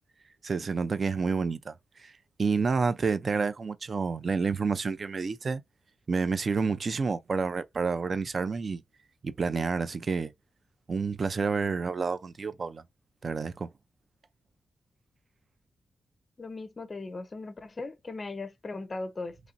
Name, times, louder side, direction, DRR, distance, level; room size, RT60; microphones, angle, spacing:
voice 1, 0.4-2.1 2.4-5.6 6.1-8.8 9.2-10.3 10.9-12.8 13.2-13.7, right 4 dB, 40° right, 0.4 m, -29 dB
voice 2, 16.4-19.4, left 3 dB, 30° left, 0.5 m, -38 dB
3.0 x 2.5 x 2.5 m
wide cardioid pair, 115°, 0 cm